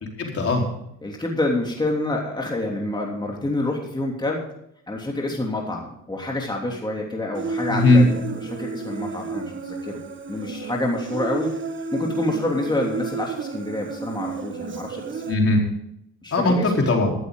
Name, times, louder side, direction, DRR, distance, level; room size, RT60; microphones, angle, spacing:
voice 1, 0.2-0.7 7.7-8.0 15.3-15.6 16.3-17.1, left 2 dB, 50° left, 1 dB, 4.3 m, -18 dB
voice 2, 1.0-4.4 4.9-10.0 10.3-11.5 11.9-15.2 16.2-16.6, left 2 dB, 15° left, -1 dB, 3.2 m, -27 dB
Human voice, 7.3-15.3, right 4 dB, 40° right, 1.7 m, -31 dB
14.5 x 13.0 x 4.0 m, 0.75 s
cardioid pair, 90°, 30 cm